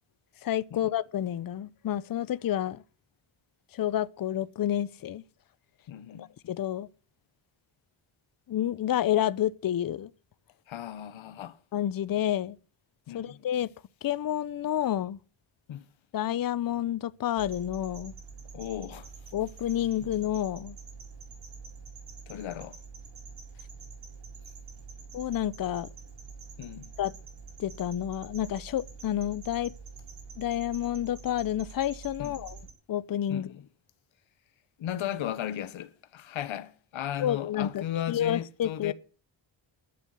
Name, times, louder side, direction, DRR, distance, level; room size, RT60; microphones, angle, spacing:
voice 1, 0.4-2.8 3.7-5.2 6.2-6.9 8.5-10.1 11.7-12.6 13.1-13.7 14.0-15.2 16.1-18.1 19.3-20.8 25.1-25.9 27.0-27.1 27.6-29.7 30.4-32.6 32.9-33.5 37.2-38.9, left 11 dB, 45° left, 0.6 m, -29 dB
voice 2, 5.9-6.3 10.7-11.6 13.1-13.4 15.7-15.9 18.5-19.1 22.3-22.8 26.6-26.9 32.2-32.4 33.3-33.6 34.8-38.9, left 11 dB, 80° left, 1.2 m, -36 dB
sound 1, 17.4-32.7, right 5 dB, 70° right, 4.9 m, -46 dB
11.5 x 7.4 x 9.6 m
wide cardioid pair, 115°, 47 cm